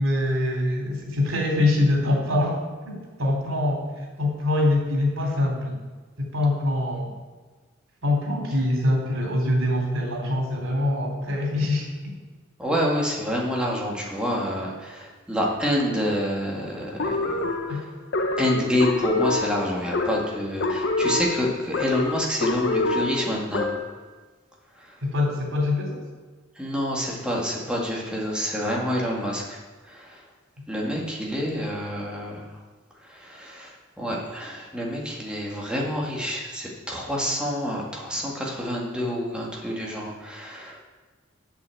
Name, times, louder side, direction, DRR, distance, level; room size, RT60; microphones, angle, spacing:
voice 1, 0.0-2.6 2.8-3.9 4.2-5.8 6.2-7.1 8.0-11.9 17.7-17.8 25.0-26.0, left 2 dB, 90° right, 0 dB, 3.2 m, -24 dB
voice 2, 12.6-17.8 18.4-23.7 24.8-24.9 26.6-29.6 29.9-30.2 30.7-32.6 33.0-40.9, equal, 5° right, -3 dB, 2.0 m, -28 dB
Planet Head, 17.0-24.0, left 3 dB, 55° left, 0.9 m, -26 dB
8.3 x 6.1 x 7.8 m, 1.4 s
head